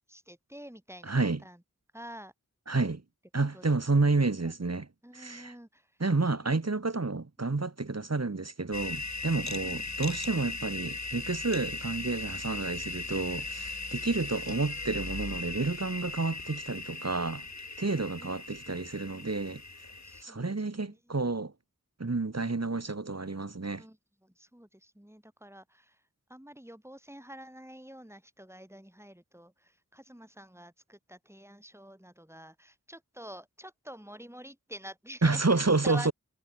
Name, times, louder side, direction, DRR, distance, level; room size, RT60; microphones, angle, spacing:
voice 1, 0.1-1.6 1.9-2.3 3.5-3.8 4.1-4.7 5.0-5.9 6.2-6.6 9.4-9.8 18.1-18.6 20.0-21.3 23.8-26.0 26.3-36.1, equal, 10° right, 3.9 m, -48 dB
voice 2, 1.1-1.4 2.7-3.0 3.3-4.9 5.1-5.5 6.0-17.4 17.8-19.6 20.2-21.5 22.0-23.8 35.2-36.1, right 3 dB, 50° right, 1.7 m, -30 dB
sound 1, 8.7-20.2, left 3 dB, 60° left, 2.8 m, -38 dB
wide cardioid pair, 50°, 32 cm